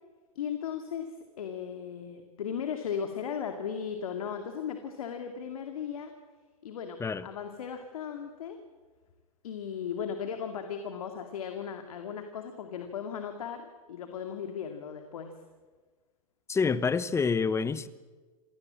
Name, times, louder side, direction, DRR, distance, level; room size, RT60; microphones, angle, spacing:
voice 1, 0.4-6.1 6.6-8.6 9.4-15.3, left 7 dB, 75° left, 2.3 m, -37 dB
voice 2, 16.5-17.9, left 5 dB, 15° left, 1.0 m, -27 dB
27.0 x 18.0 x 7.5 m
hypercardioid pair, 105°, 19 cm